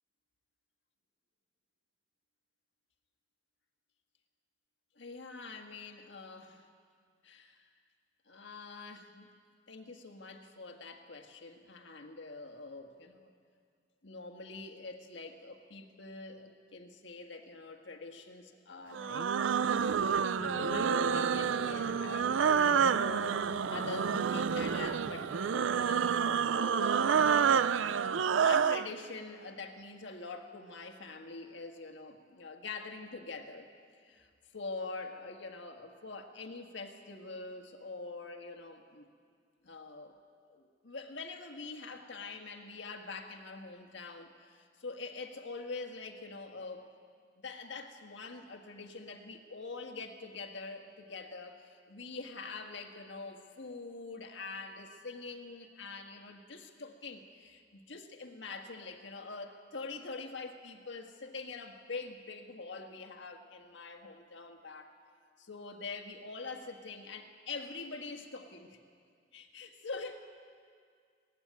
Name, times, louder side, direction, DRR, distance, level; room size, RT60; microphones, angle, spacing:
voice 1, 4.9-6.7 7.2-7.7 8.3-9.3 9.7-13.3 14.0-19.8 20.4-26.2 26.5-27.3 28.2-33.7 34.0-39.1 39.6-40.1 40.4-46.9 47.4-64.9 65.4-68.8 69.3-70.2, left 3 dB, 70° left, 5 dB, 1.6 m, -45 dB
sound 1, 18.9-28.9, right 7 dB, 85° right, 0.4 m, -28 dB
sound 2, 20.4-26.5, equal, 20° left, 0.9 m, -47 dB
19.0 x 15.0 x 9.4 m, 2.1 s
head